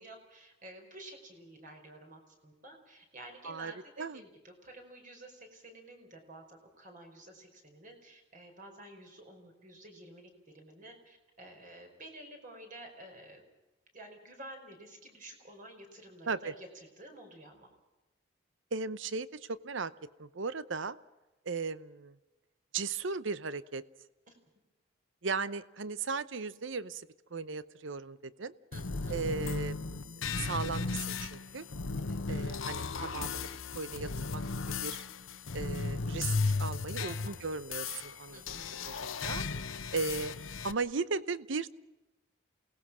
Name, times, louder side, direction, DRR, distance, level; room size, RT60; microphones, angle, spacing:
voice 1, 0.0-10.3 10.5-13.4 13.9-17.7 24.3-24.4 28.7-29.2 32.0-32.2 37.0-37.4 38.3-38.7, right 1 dB, 40° right, 4 dB, 4.9 m, -51 dB
voice 2, 18.7-19.9 20.2-21.0 21.5-22.1 22.7-23.8 25.2-28.5 29.1-29.8 30.4-31.7 32.3-33.5 33.7-34.4 34.8-35.0 35.5-38.6 38.9-39.4 39.9-40.3 40.6-41.7, right 4 dB, 70° right, 16 dB, 0.8 m, -36 dB
sound 1, 28.7-40.7, left 4 dB, 85° left, 1.0 m, -36 dB
28.5 x 18.5 x 6.2 m, 1.1 s
head